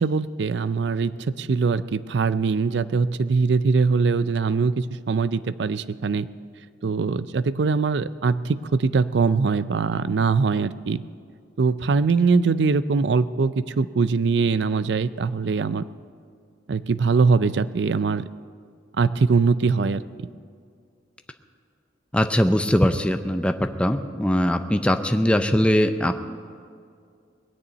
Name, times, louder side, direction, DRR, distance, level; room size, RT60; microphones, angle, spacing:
voice 1, 0.0-6.3 6.8-11.0 11.6-15.8 16.7-18.2 19.0-20.0, right 4 dB, 65° right, 15 dB, 0.4 m, -22 dB
voice 2, 22.1-26.1, equal, 5° left, 7 dB, 0.5 m, -21 dB
20.0 x 6.8 x 9.1 m, 2.2 s
head